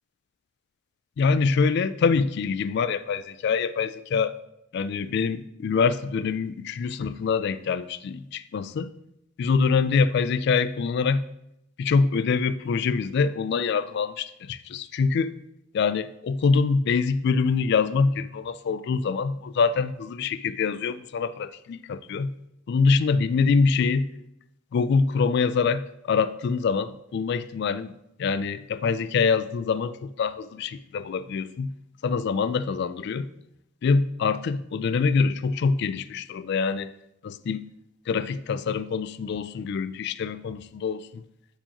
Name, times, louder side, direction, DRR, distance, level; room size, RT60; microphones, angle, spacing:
voice 1, 1.2-4.3 4.7-8.9 9.4-11.2 11.8-15.3 15.7-22.3 22.7-24.1 24.7-27.9 28.2-31.7 32.0-33.3 33.8-36.9 37.2-37.6 38.1-41.2, left 5 dB, 55° left, 15 dB, 0.3 m, -25 dB
8.7 x 4.6 x 2.9 m, 0.79 s
head